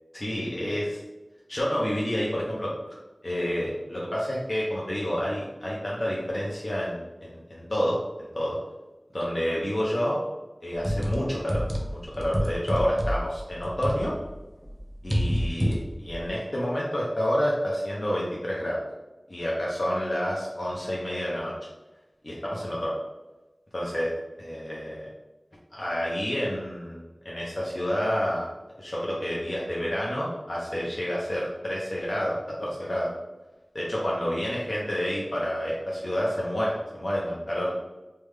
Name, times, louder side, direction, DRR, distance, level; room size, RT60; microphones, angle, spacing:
voice 1, 0.1-1.0 1.5-2.7 3.2-8.6 9.1-10.2 10.6-11.6 11.9-14.1 15.0-18.8 19.3-21.5 22.2-22.9 23.7-24.1 24.4-25.1 25.7-27.0 27.2-28.5 28.8-32.3 32.6-33.1 33.7-37.8, equal, 60° left, -5 dB, 0.6 m, -29 dB
sound 1, 10.7-14.4 14.6-16.3, equal, 15° right, 0.7 m, -28 dB
3.3 x 2.2 x 3.2 m, 1.1 s
wide cardioid pair, 40°, 0 cm